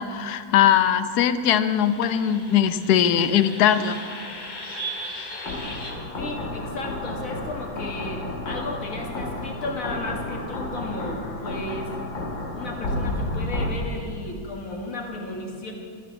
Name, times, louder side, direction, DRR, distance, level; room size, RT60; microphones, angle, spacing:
voice 1, 0.0-4.0, left 9 dB, 65° left, 12 dB, 1.2 m, -20 dB
sound 1, 1.6-13.7, left 1 dB, 90° left, 2.7 m, -32 dB
voice 2, 6.2-11.9 12.5-15.7, left 2 dB, 45° left, 1 dB, 2.2 m, -34 dB
14.0 x 9.8 x 7.1 m, 2.3 s
omnidirectional pair, 2.0 m